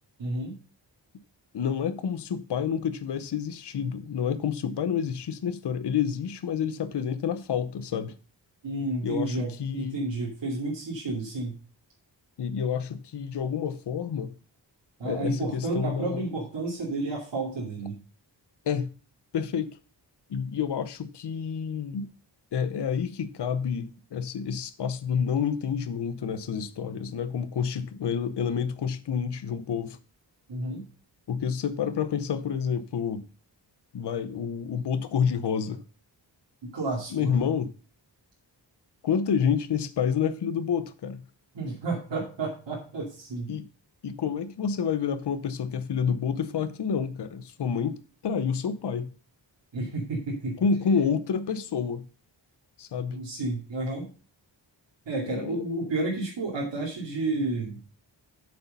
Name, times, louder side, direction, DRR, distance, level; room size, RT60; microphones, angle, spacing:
voice 1, 0.2-0.6 8.6-11.6 15.0-18.0 30.5-30.9 36.6-37.3 41.5-43.5 49.7-50.6 53.1-54.1 55.1-57.8, right 2 dB, 75° right, 2.6 m, -31 dB
voice 2, 1.5-8.1 9.0-10.0 12.4-14.3 15.0-16.2 18.7-18.9 19.3-19.7 20.3-22.1 22.5-30.0 31.3-33.2 33.9-35.8 37.1-37.7 39.0-41.2 43.5-43.7 44.0-48.0 48.2-49.1 50.6-52.0 52.8-53.2 55.3-55.6, left 7 dB, 65° left, 0.8 m, -29 dB
8.2 x 6.7 x 5.3 m
wide cardioid pair, 155°, 44 cm